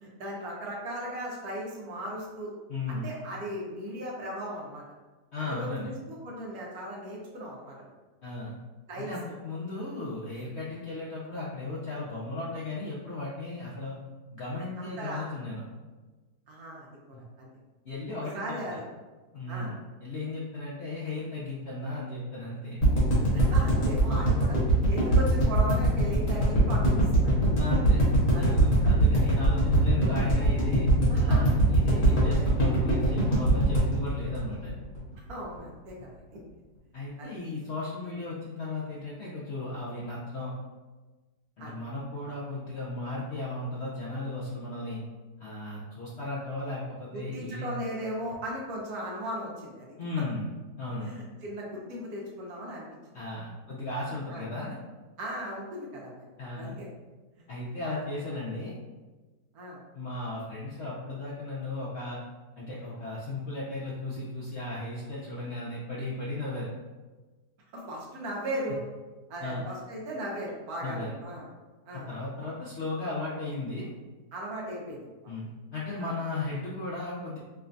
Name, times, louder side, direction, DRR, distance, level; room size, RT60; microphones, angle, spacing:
voice 1, 0.0-2.5 2.9-4.8 5.4-7.9 8.9-9.1 14.8-15.2 16.5-17.5 18.3-18.8 19.5-19.7 23.3-24.6 24.9-27.7 28.3-28.6 31.1-31.4 32.1-32.5 35.3-36.4 37.2-37.4 41.6-41.7 47.1-50.2 51.0-52.9 54.3-54.4 55.2-56.2 56.5-56.9 57.4-57.5 57.8-58.0 59.5-59.8 67.7-68.8 69.3-71.5 71.8-72.1 74.3-75.4 76.0-76.1, right 1 dB, 70° right, -3 dB, 1.2 m, -37 dB
voice 2, 2.7-3.1 5.3-5.9 8.2-8.6 9.0-14.0 14.3-15.6 17.1-17.2 17.8-18.4 18.7-18.8 19.3-22.8 27.6-28.0 28.3-30.9 31.2-34.7 36.9-40.5 41.6-45.0 45.4-47.7 50.0-50.5 50.8-51.1 53.1-54.8 56.4-56.8 57.5-58.7 59.9-62.2 62.6-66.7 69.4-69.6 70.8-71.1 71.9-73.9 75.3-77.4, left 2 dB, 65° left, -6 dB, 0.7 m, -36 dB
sound 1, 22.8-35.0 35.3-35.4 35.6-35.7, right 2 dB, 40° left, 1.0 m, -22 dB
4.7 x 2.2 x 2.5 m, 1.2 s
omnidirectional pair, 1.8 m